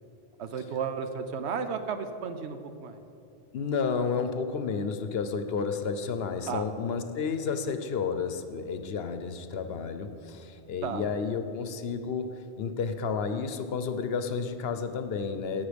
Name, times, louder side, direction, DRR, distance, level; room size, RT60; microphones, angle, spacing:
voice 1, 0.4-3.0 6.5-6.7 7.5-7.6 10.8-11.1, right 6 dB, 80° right, 8 dB, 1.0 m, -33 dB
voice 2, 3.5-15.7, left 5 dB, 65° left, 9 dB, 0.9 m, -31 dB
16.5 x 5.7 x 5.1 m, 2.8 s
omnidirectional pair, 1.1 m